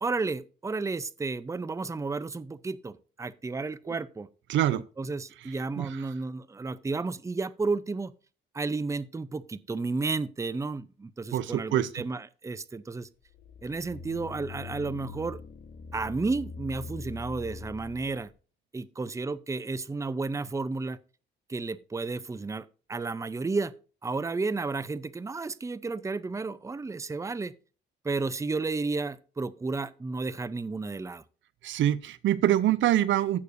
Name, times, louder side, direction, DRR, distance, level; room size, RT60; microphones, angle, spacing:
voice 1, 0.0-4.3 4.7-8.1 8.5-13.1 13.6-15.4 15.9-18.3 18.7-21.0 21.5-23.7 24.0-27.5 28.0-31.2, right 3 dB, 15° right, 0.6 m, -32 dB
voice 2, 4.5-4.8 5.8-5.9 11.3-11.9 31.6-33.4, right 12 dB, 75° right, 0.6 m, -24 dB
sound 1, 13.2-18.3, left 5 dB, 60° left, 1.2 m, -42 dB
15.5 x 6.7 x 2.6 m
cardioid pair, 90°, 20 cm